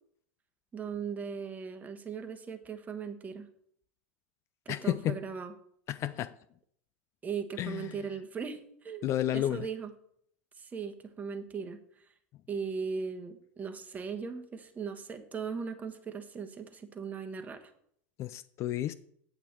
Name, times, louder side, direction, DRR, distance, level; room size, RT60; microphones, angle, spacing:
voice 1, 0.7-3.5 4.6-5.5 7.2-9.9 10.6-11.8 12.5-17.7, right 6 dB, 20° right, 1.2 m, -38 dB
voice 2, 4.7-5.2 5.9-6.3 7.6-8.0 9.0-9.6 18.2-18.9, left 12 dB, 40° left, 0.4 m, -31 dB
8.4 x 7.9 x 4.4 m
hypercardioid pair, 100°, 7 cm